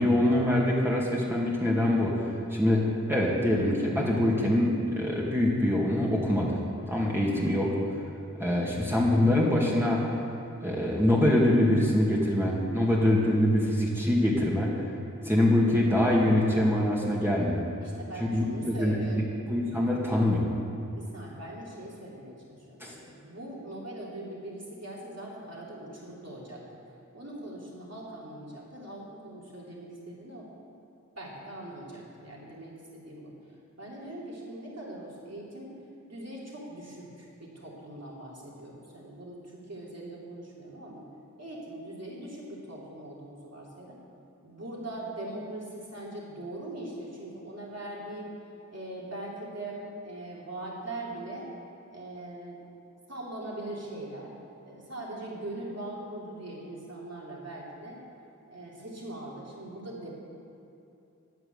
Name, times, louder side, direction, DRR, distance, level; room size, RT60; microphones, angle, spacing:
voice 1, 0.0-6.6 6.9-7.7 8.4-10.0 10.6-14.7 15.2-17.6 18.2-19.2 19.5-20.5 22.8-22.9, left 1 dB, 10° right, -5 dB, 2.2 m, -24 dB
voice 2, 17.8-19.3 20.8-26.6 27.1-30.5 31.1-33.3 33.8-35.7 36.1-41.0 41.4-44.0 44.4-48.3 48.7-51.5 51.9-52.6 53.1-54.3 54.6-58.0 58.5-60.1, right 1 dB, 55° right, -5 dB, 3.4 m, -41 dB
9.8 x 9.2 x 8.2 m, 2.8 s
wide cardioid pair, 50°, 30 cm